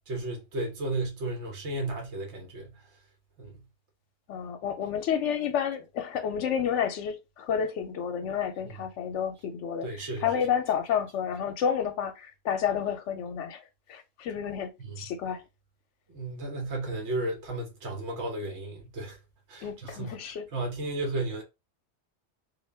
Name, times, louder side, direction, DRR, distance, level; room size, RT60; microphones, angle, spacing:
voice 1, 0.1-2.7 3.4-3.6 9.8-10.2 14.8-15.1 16.1-19.2 19.5-20.1 20.5-21.4, right 2 dB, 70° right, 1.4 m, -33 dB
voice 2, 4.3-15.4 19.6-20.5, left 8 dB, 85° left, 0.9 m, -30 dB
3.6 x 2.1 x 3.3 m
omnidirectional pair, 1.2 m